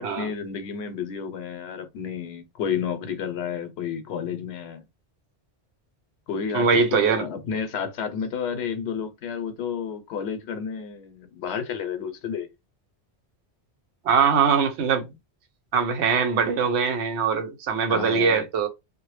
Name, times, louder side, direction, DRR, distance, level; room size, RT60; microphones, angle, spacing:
voice 1, 0.0-4.8 6.3-12.5 17.9-18.5, left 7 dB, 75° left, 0.8 m, -31 dB
voice 2, 6.5-7.3 14.0-15.1 15.7-18.7, right 6 dB, 90° right, 0.9 m, -22 dB
2.0 x 2.0 x 3.1 m
omnidirectional pair, 1.1 m